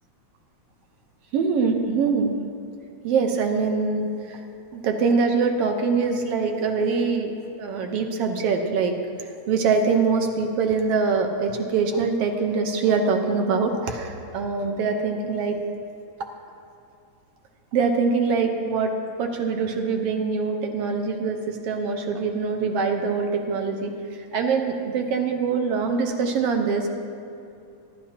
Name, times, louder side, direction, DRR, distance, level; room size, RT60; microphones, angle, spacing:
voice 1, 1.3-2.4 3.0-4.4 4.7-7.3 7.6-9.0 9.5-15.6 17.7-23.9 24.3-26.9, right 5 dB, 65° right, 4 dB, 1.8 m, -23 dB
24.5 x 12.0 x 2.9 m, 2.6 s
omnidirectional pair, 3.4 m